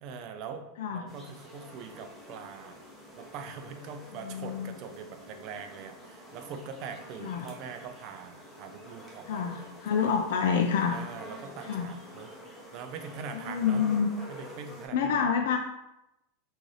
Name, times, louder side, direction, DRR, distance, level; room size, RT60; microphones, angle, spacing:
voice 1, 0.0-0.7 0.9-2.8 3.2-10.2 10.9-12.3 12.7-13.8 14.3-15.3, right 6 dB, 40° right, 6 dB, 0.4 m, -43 dB
sound 1, 1.1-14.9, equal, 10° left, 0.7 m, -48 dB
voice 2, 4.2-4.8 7.2-7.5 9.3-11.0 11.6-11.9 13.4-14.1 14.9-15.6, left 7 dB, 70° left, 4 dB, 0.3 m, -27 dB
3.8 x 2.5 x 3.2 m, 0.88 s
supercardioid pair, 170°, 0 cm